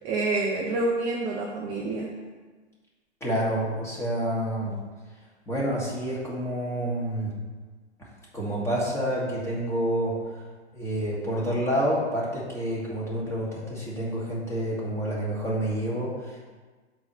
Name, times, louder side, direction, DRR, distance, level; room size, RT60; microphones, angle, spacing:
voice 1, 0.0-2.1, right 2 dB, 15° right, -1 dB, 0.4 m, -27 dB
voice 2, 3.2-4.7 5.5-7.3 8.3-10.4 10.7-16.4, right 1 dB, 10° left, -6 dB, 1.7 m, -28 dB
8.0 x 3.1 x 5.6 m, 1.4 s
figure-of-eight pair, 110°, 35 cm